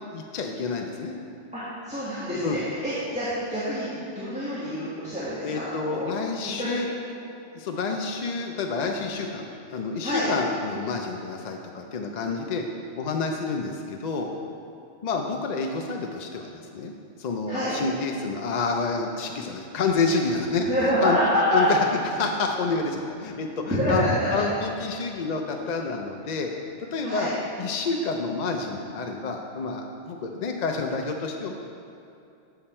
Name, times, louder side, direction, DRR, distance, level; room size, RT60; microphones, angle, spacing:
voice 1, 0.1-1.2 2.4-2.6 5.4-6.9 7.5-12.6 13.0-14.3 15.0-16.9 17.2-21.2 21.5-21.8 22.0-26.5 26.9-27.3 27.6-31.5, left 4 dB, 50° left, 2 dB, 0.5 m, -28 dB
voice 2, 1.5-6.1 6.6-7.1 10.0-10.3 17.5-17.7 20.6-21.6 23.8-24.4 27.0-27.3, equal, 5° right, -13 dB, 1.7 m, -27 dB
8.8 x 5.8 x 4.3 m, 2.6 s
omnidirectional pair, 1.2 m